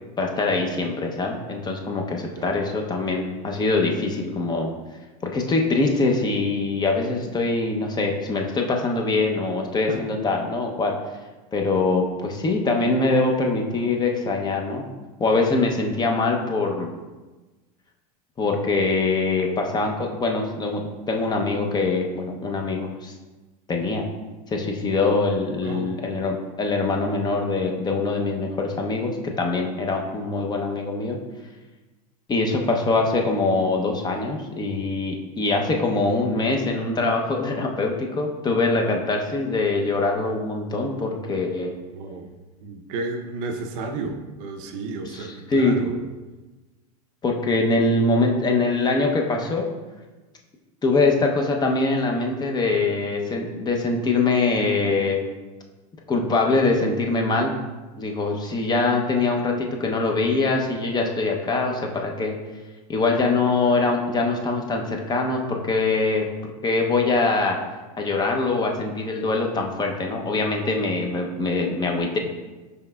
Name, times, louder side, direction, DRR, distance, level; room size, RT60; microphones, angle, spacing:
voice 1, 0.2-4.7 5.2-10.9 11.5-14.9 15.2-16.9 18.4-23.1 23.7-24.1 24.5-31.2 32.3-41.8 45.1-45.8 47.2-49.7 50.8-55.2 56.1-57.6 58.0-62.4 62.9-66.3 66.6-67.6 68.0-72.2, left 3 dB, 20° left, 2 dB, 0.6 m, -23 dB
voice 2, 25.6-26.1 41.9-42.3 42.6-46.0, right 3 dB, 60° right, 4 dB, 0.6 m, -32 dB
5.5 x 4.0 x 2.2 m, 1.2 s
hypercardioid pair, 110°, 20 cm